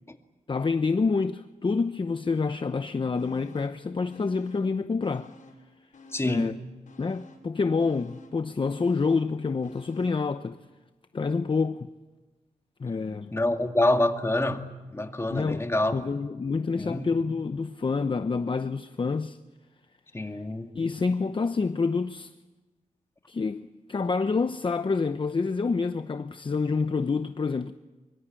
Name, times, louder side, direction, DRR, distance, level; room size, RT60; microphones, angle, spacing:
voice 1, 0.5-5.3 6.2-6.5 7.0-10.6 11.1-11.9 12.8-13.3 15.3-15.6 15.9-19.4 20.2-20.4 20.7-22.3 23.3-27.7, left 4 dB, 40° left, 0.8 m, -27 dB
sound 1, 3.2-3.8 4.1-5.7 5.9-10.3 10.7-10.8, left 2 dB, 75° left, 5.7 m, -52 dB
voice 2, 6.1-6.5 13.3-14.6 14.9-16.1 16.8-17.1 20.1-20.7, left 1 dB, 20° left, 2.2 m, -26 dB
24.0 x 24.0 x 9.0 m
wide cardioid pair, 90°, 13 cm